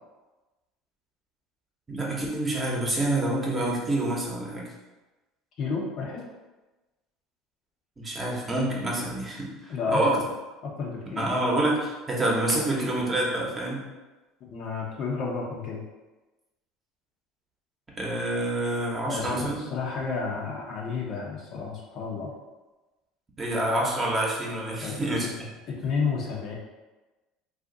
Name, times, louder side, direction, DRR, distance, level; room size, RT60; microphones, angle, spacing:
voice 1, 1.9-4.7 8.0-10.2 11.1-13.9 18.0-19.6 23.4-25.5, right 1 dB, 25° right, -3 dB, 0.9 m, -27 dB
voice 2, 5.6-6.2 9.7-10.0 10.6-11.3 14.5-15.8 19.1-22.3 24.8-25.0 25.7-26.6, left 5 dB, 55° left, -2 dB, 0.7 m, -31 dB
2.5 x 2.5 x 3.7 m, 1.1 s
supercardioid pair, 100°, 0 cm